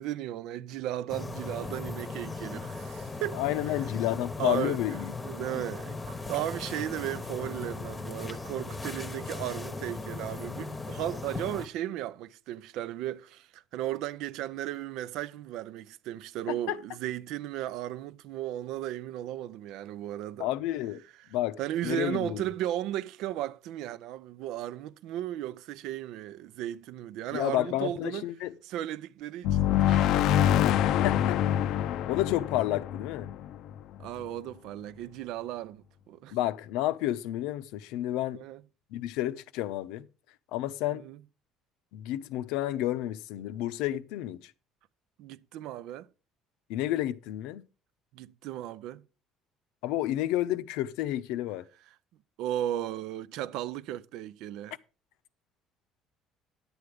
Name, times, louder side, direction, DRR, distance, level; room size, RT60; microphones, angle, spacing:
voice 1, 0.0-3.7 4.4-4.8 5.2-20.5 21.2-21.3 21.6-28.3 28.6-30.6 34.0-36.4 38.3-38.6 40.9-41.2 45.2-46.1 48.1-49.0 52.4-54.7, right 12 dB, 70° right, 0.6 m, -35 dB
sound 1, 1.1-11.7, left 3 dB, 15° left, 1.0 m, -38 dB
voice 2, 3.3-5.1 16.7-16.8 20.4-21.0 21.3-21.6 21.8-22.5 27.3-28.5 30.8-31.4 32.1-33.3 36.3-38.4 38.9-40.1 40.5-41.0 41.9-44.5 46.7-47.6 49.8-51.7, left 14 dB, 90° left, 0.8 m, -30 dB
sound 2, 29.4-34.0, left 11 dB, 60° left, 0.5 m, -25 dB
11.0 x 8.1 x 5.0 m
cardioid pair, 155°, 0 cm